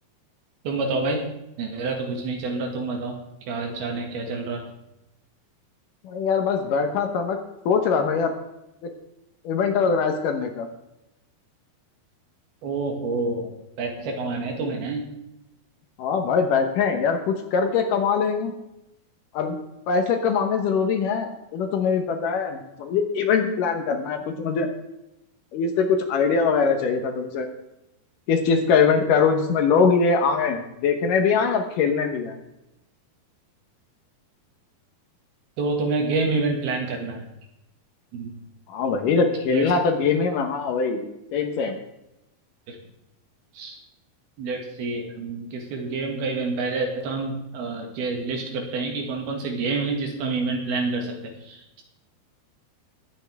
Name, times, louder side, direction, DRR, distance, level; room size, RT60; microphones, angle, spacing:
voice 1, 0.7-1.3 1.6-3.2 3.5-4.6 12.6-13.5 13.8-15.1 35.6-37.2 38.1-38.3 39.5-39.7 42.7-42.8 43.6-43.7 44.4-51.8, right 3 dB, 80° right, 2 dB, 3.8 m, -28 dB
voice 2, 6.0-7.4 7.7-8.3 8.8-8.9 9.4-10.7 16.0-18.5 19.3-19.6 19.9-24.7 25.5-27.5 28.3-32.4 38.7-41.0 41.3-41.8, left 5 dB, 70° left, 5 dB, 2.4 m, -22 dB
20.5 x 8.9 x 3.5 m, 0.89 s
omnidirectional pair, 4.4 m